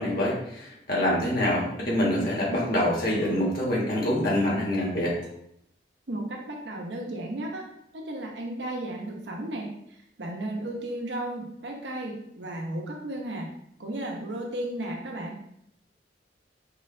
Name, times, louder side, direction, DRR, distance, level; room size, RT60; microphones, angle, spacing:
voice 1, 0.0-5.2, left 1 dB, 55° left, -4 dB, 1.5 m, -25 dB
voice 2, 6.1-7.6 7.9-9.7 10.2-13.4 13.8-15.3, right 1 dB, 85° right, 0 dB, 0.9 m, -34 dB
4.7 x 2.7 x 3.2 m, 0.73 s
head